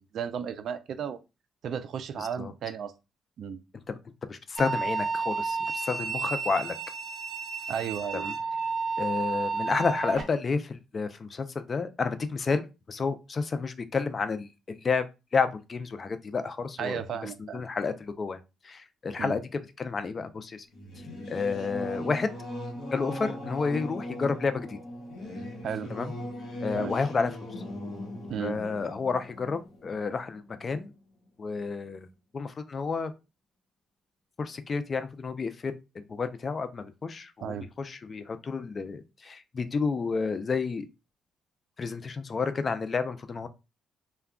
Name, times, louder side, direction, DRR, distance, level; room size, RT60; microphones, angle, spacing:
voice 1, 0.1-1.2 1.6-2.9 3.4-3.6 7.7-8.3 16.8-17.6 19.2-19.4 25.6-25.9 26.7-27.0 28.3-28.6 37.4-37.7, right 8 dB, 65° right, 0.3 m, -34 dB
voice 2, 2.2-2.5 3.9-4.0 4.3-6.8 8.1-8.3 9.0-15.0 15.3-18.4 18.6-20.7 21.3-22.3 22.9-24.8 25.9-26.1 26.6-27.4 28.4-30.9 31.4-32.1 32.3-33.1 34.4-35.7 36.1-40.9 41.8-43.5, left 4 dB, 40° left, 0.4 m, -30 dB
sound 1, 4.6-10.2, right 4 dB, 50° right, 0.7 m, -31 dB
Singing / Musical instrument, 20.7-30.8, left 1 dB, 70° left, 1.0 m, -39 dB
2.2 x 2.2 x 3.5 m
cardioid pair, 90°, 0 cm